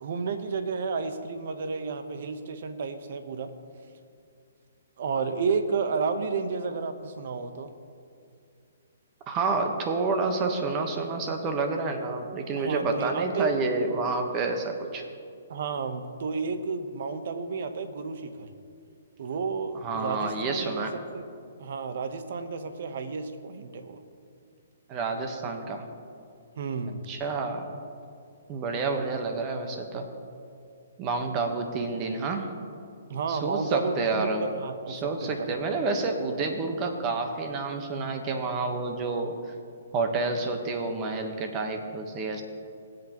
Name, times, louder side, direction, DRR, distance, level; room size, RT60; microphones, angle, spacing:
voice 1, 0.0-3.5 5.0-7.7 12.6-13.5 15.5-18.5 19.2-20.8 21.1-21.2 21.6-24.0 26.6-27.0 33.1-35.5, right 5 dB, 60° right, 8 dB, 1.1 m, -31 dB
voice 2, 9.3-15.0 19.7-20.9 24.9-25.9 27.1-27.7 28.5-30.1 31.0-32.5 33.3-34.4 34.9-39.4 39.9-42.4, right 3 dB, 30° right, 5 dB, 1.2 m, -29 dB
21.0 x 7.9 x 3.1 m, 2.4 s
hypercardioid pair, 140°, 0 cm